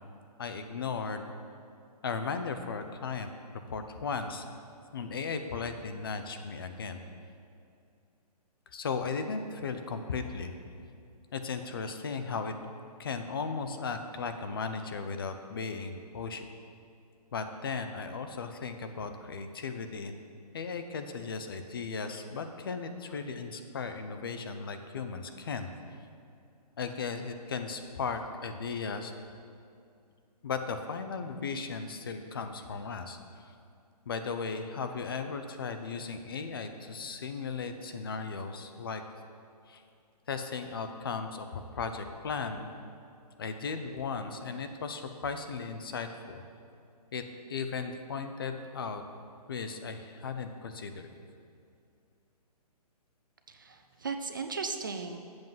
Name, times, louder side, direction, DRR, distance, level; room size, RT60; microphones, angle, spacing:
voice 1, 0.4-1.2 2.0-3.3 3.7-4.4 4.9-7.0 8.7-10.5 11.3-12.5 13.0-16.5 17.3-20.1 20.5-25.7 26.8-29.1 30.4-33.2 34.1-39.0 39.7-39.8 40.3-42.7 43.4-46.4 47.1-47.2 47.5-49.0 49.5-51.1, left 5 dB, 35° left, 7 dB, 0.5 m, -36 dB
voice 2, 53.5-55.2, right 4 dB, 30° right, 6 dB, 0.4 m, -36 dB
7.8 x 7.5 x 5.5 m, 2.5 s
hypercardioid pair, 170°, 21 cm